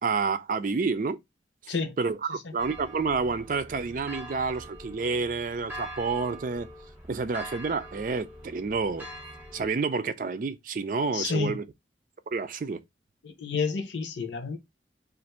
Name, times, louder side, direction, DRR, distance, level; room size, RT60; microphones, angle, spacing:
voice 1, 0.0-1.2 1.6-6.7 7.1-9.1 9.5-11.6 12.3-12.8, right 4 dB, 45° right, 0.4 m, -29 dB
sound 1, 2.6-9.7, right 1 dB, 10° right, 0.6 m, -43 dB
voice 2, 11.1-11.6 13.2-14.6, left 5 dB, 85° left, 0.8 m, -30 dB
2.5 x 2.5 x 4.2 m
head